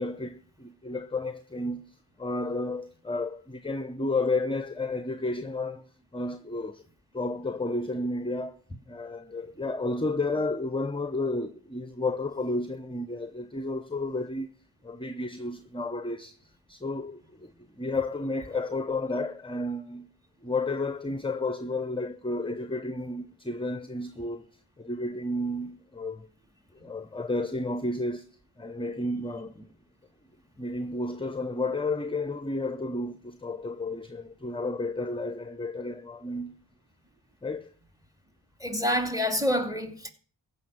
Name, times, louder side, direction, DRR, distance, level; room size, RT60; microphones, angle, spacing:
voice 1, 0.0-6.8 7.1-8.6 8.9-14.5 14.8-17.5 17.8-20.1 20.4-24.5 24.8-26.3 26.8-29.7 30.6-36.6 37.4-37.7, left 2 dB, 10° left, 0.8 m, -32 dB
voice 2, 38.6-40.1, equal, 5° right, 2.6 m, -27 dB
15.0 x 6.3 x 9.4 m
cardioid pair, 45°, 49 cm